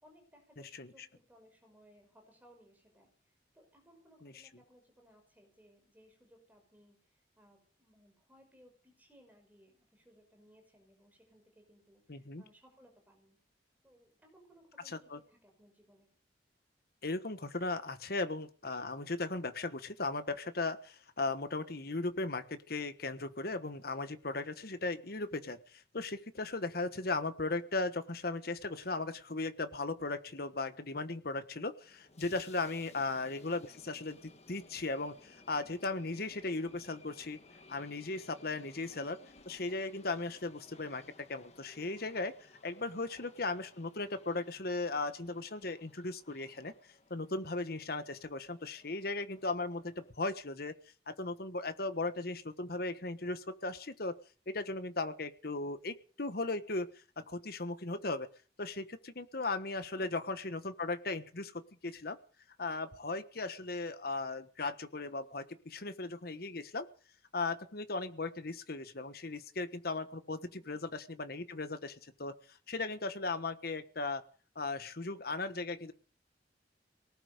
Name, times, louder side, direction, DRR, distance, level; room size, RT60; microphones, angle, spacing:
voice 1, 0.0-13.4 13.8-16.1 32.8-33.1 43.0-43.1 59.9-60.2 70.5-70.9, equal, 10° right, 3 dB, 5.6 m, -63 dB
voice 2, 12.1-12.4 14.8-15.2 17.0-37.4 37.7-39.2 39.4-42.3 42.6-46.7 47.1-50.7 51.1-54.1 54.5-56.9 57.2-58.3 58.6-62.2 62.6-66.9 67.3-74.2 74.5-75.9, left 3 dB, 60° left, 11 dB, 1.3 m, -37 dB
sound 1, 31.8-50.1, left 3 dB, 40° left, 1.7 m, -60 dB
19.0 x 11.5 x 6.6 m, 0.42 s
head